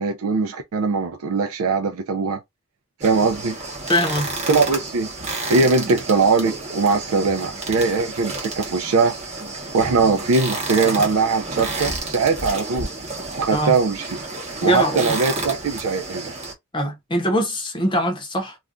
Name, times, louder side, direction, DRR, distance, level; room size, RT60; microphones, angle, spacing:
voice 1, 0.0-2.4 3.0-3.6 4.5-5.1 5.5-9.1 9.7-12.9 13.4-14.1 14.6-16.3, right 4 dB, 75° right, 0.4 m, -21 dB
sound 1, 3.0-16.5, right 2 dB, 30° right, 0.8 m, -30 dB
voice 2, 3.9-4.3 13.5-13.8 14.6-15.1 16.7-18.5, equal, 20° left, 0.7 m, -22 dB
2.4 x 2.2 x 3.6 m
head